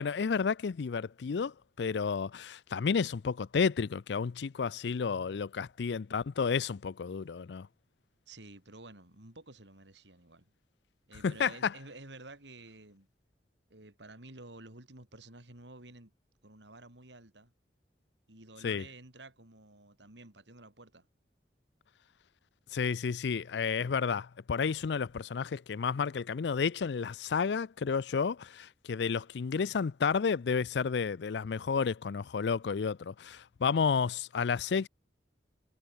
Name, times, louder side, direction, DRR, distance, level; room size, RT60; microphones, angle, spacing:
voice 1, 0.0-7.7 11.2-11.7 18.6-18.9 22.7-34.9, left 5 dB, 75° left, 0.4 m, -31 dB
voice 2, 8.3-10.5 11.1-13.1 13.7-16.1 16.4-17.5 18.3-21.1, right 2 dB, 85° right, 4.1 m, -51 dB
head